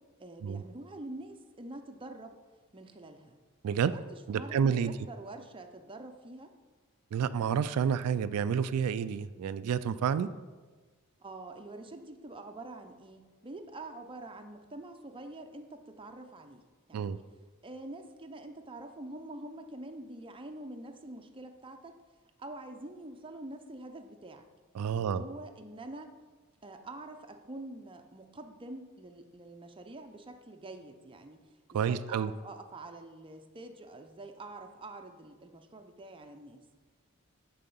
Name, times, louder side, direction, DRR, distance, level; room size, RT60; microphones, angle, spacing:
voice 1, 0.2-2.4 2.7-3.4 3.9-4.0 4.3-4.7 5.0-6.5 11.2-16.6 16.9-17.2 17.6-22.0 22.4-24.5 25.0-26.1 26.6-31.4 31.7-36.6, right 2 dB, 25° right, 5 dB, 0.6 m, -46 dB
voice 2, 4.3-5.0 7.1-10.3 16.9-17.2 24.7-25.2 31.7-32.3, right 7 dB, 85° right, 14 dB, 0.3 m, -29 dB
7.3 x 4.7 x 7.0 m, 1.4 s
head